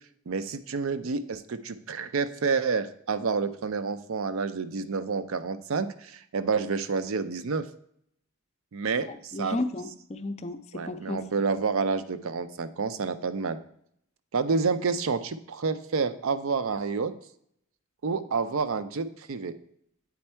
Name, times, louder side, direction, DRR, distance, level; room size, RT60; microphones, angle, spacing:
voice 1, 0.3-7.7 8.7-9.6 10.7-13.6 14.3-17.1 18.0-19.6, right 5 dB, 70° right, 12 dB, 0.5 m, -29 dB
voice 2, 9.1-11.3, left 2 dB, 30° left, 8 dB, 0.4 m, -33 dB
8.4 x 4.4 x 4.4 m, 0.70 s
head